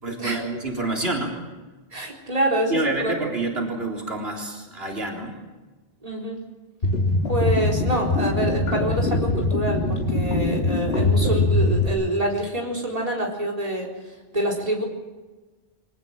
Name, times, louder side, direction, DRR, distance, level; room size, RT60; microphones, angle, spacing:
voice 1, 0.0-1.4 2.7-5.4, right 2 dB, 75° right, 2 dB, 4.1 m, -28 dB
voice 2, 1.9-3.1 6.0-6.4 7.3-13.9 14.3-14.8, right 1 dB, 35° right, 1 dB, 4.3 m, -26 dB
sound 1, 6.8-11.9, left 2 dB, 80° left, 2.2 m, -22 dB
24.5 x 18.5 x 7.6 m, 1.2 s
omnidirectional pair, 1.1 m